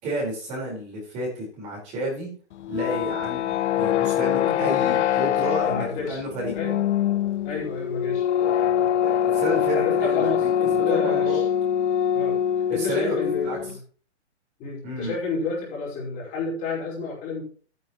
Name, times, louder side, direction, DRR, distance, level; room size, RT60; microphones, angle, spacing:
voice 1, 0.0-2.3 2.7-6.6 9.0-11.4 12.7-13.2 13.4-13.6 14.8-15.1, right 1 dB, 20° right, -3 dB, 4.6 m, -31 dB
sound 1, 2.5-13.8, left 10 dB, 80° left, 0.5 m, -24 dB
voice 2, 4.4-5.0 5.7-6.2 6.5-6.8 7.4-8.2 9.6-11.5 12.1-12.4 12.7-13.6 14.6-17.4, left 4 dB, 20° left, -4 dB, 4.7 m, -30 dB
13.0 x 9.8 x 3.1 m, 0.42 s
hypercardioid pair, 160°, 34 cm